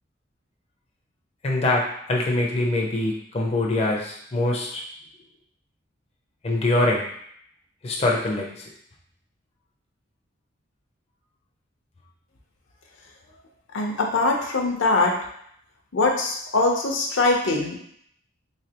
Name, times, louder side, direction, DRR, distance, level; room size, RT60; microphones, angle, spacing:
voice 1, 1.4-4.8 6.4-7.1 7.8-8.7, left 2 dB, 30° left, -2 dB, 0.5 m, -24 dB
voice 2, 13.7-15.1 15.9-17.8, left 3 dB, 80° left, 1 dB, 0.6 m, -22 dB
3.2 x 3.2 x 2.8 m, 0.67 s
head